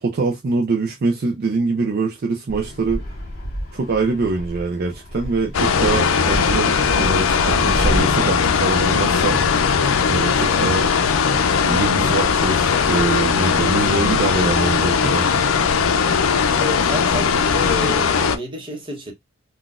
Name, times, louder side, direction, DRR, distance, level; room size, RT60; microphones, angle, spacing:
voice 1, 0.0-3.0 3.7-9.4 10.1-10.9 11.6-15.4, right 4 dB, 50° right, 0.4 m, -24 dB
Fixed-wing aircraft airplane, 2.5-8.0, equal, 50° left, 1.5 m, -30 dB
sound 1, 5.5-18.4, left 6 dB, 90° left, 0.4 m, -19 dB
voice 2, 16.5-19.1, left 1 dB, 25° right, 1.0 m, -31 dB
3.8 x 2.3 x 2.4 m
head